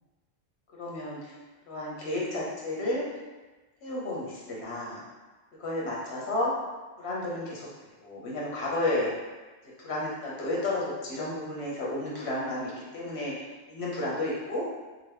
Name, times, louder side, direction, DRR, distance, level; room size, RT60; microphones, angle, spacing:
voice 1, 0.8-1.3 1.7-3.1 3.8-5.0 5.6-6.5 7.0-7.7 8.0-9.1 9.8-13.3 13.7-14.6, left 1 dB, 75° left, -5 dB, 1.1 m, -32 dB
2.9 x 2.0 x 3.3 m, 1.2 s
omnidirectional pair, 1.1 m